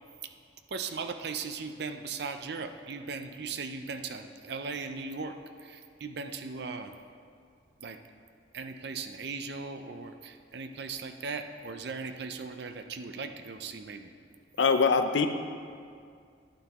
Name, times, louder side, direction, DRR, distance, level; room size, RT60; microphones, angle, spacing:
voice 1, 0.7-6.9 7.8-8.0 8.5-14.1, right 4 dB, 55° right, 7 dB, 0.5 m, -38 dB
voice 2, 14.6-15.3, left 5 dB, 70° left, 8 dB, 0.5 m, -23 dB
11.5 x 9.0 x 3.0 m, 2.2 s
head